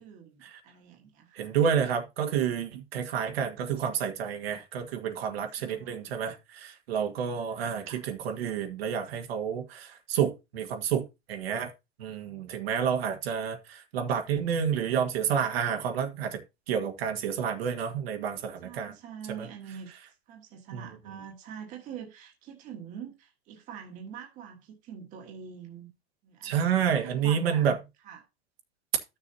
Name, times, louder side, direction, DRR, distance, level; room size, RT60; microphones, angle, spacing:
voice 1, 0.0-1.5 5.6-6.4 7.3-8.1 18.6-19.9 20.3-25.9 26.2-27.7 28.0-28.3, right 7 dB, 25° right, 1.4 m, -45 dB
voice 2, 1.4-11.7 12.0-16.4 16.7-18.9 19.3-19.5 20.7-20.9 26.4-27.8, right 8 dB, 70° right, 1.8 m, -29 dB
13.0 x 6.6 x 2.7 m
supercardioid pair, 170°, 31 cm